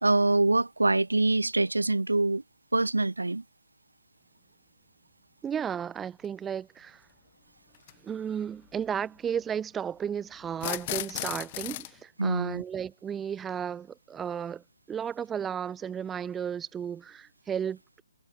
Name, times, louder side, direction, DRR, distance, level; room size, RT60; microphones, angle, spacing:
voice 1, 0.0-2.4 2.7-3.4 12.2-12.6, right 2 dB, 80° right, 1.0 m, -24 dB
voice 2, 5.4-7.0 8.0-18.0, right 8 dB, 10° right, 3.3 m, -34 dB
sound 1, 6.2-6.3 7.7-7.9 10.5-11.9, left 17 dB, 30° left, 1.6 m, -34 dB
figure-of-eight pair, 140°, 0 cm